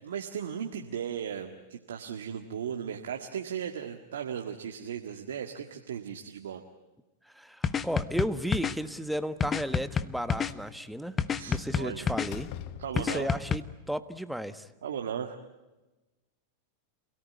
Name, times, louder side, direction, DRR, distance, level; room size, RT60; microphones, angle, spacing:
voice 1, 0.0-6.6 11.4-12.1 12.8-13.3 14.8-15.4, right 8 dB, 80° right, 4 dB, 1.8 m, -36 dB
voice 2, 7.3-11.2 11.5-12.5 12.9-14.7, equal, ahead, 12 dB, 1.4 m, -34 dB
sound 1, 7.6-8.7 9.4-10.5 11.2-12.3 13.0-13.6, left 6 dB, 25° left, 1.1 m, -28 dB
Slam, 8.4-9.4 11.5-11.8 12.2-13.4, left 12 dB, 50° left, 0.9 m, -44 dB
28.0 x 18.0 x 9.7 m, 1.1 s
hypercardioid pair, 100°, 0 cm